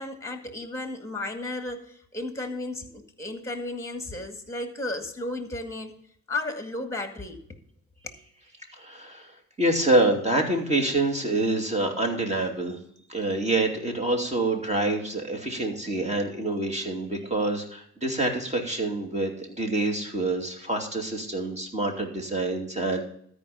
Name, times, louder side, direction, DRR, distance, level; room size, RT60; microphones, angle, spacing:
voice 1, 0.0-5.9 6.3-7.4 8.0-8.2, left 2 dB, 10° left, 5 dB, 2.0 m, -34 dB
voice 2, 8.7-9.3 9.6-12.8 13.1-23.0, right 2 dB, 20° right, 3 dB, 2.6 m, -26 dB
13.0 x 5.0 x 6.8 m, 0.65 s
cardioid pair, 90°, 30 cm